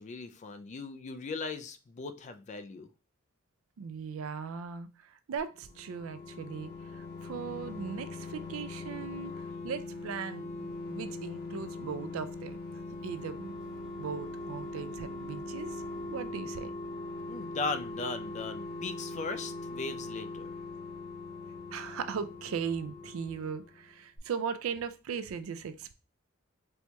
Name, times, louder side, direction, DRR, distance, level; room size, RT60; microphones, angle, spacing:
voice 1, 0.0-2.9 17.3-20.5, left 3 dB, 35° left, 9 dB, 0.3 m, -38 dB
voice 2, 3.8-9.3 9.6-12.6 13.0-13.5 14.0-15.8 16.1-16.7 21.7-25.9, right 6 dB, 85° right, 11 dB, 0.4 m, -38 dB
sound 1, 5.4-23.9 24.2-24.3, left 2 dB, 50° left, 0.8 m, -41 dB
4.3 x 2.8 x 2.2 m, 0.33 s
head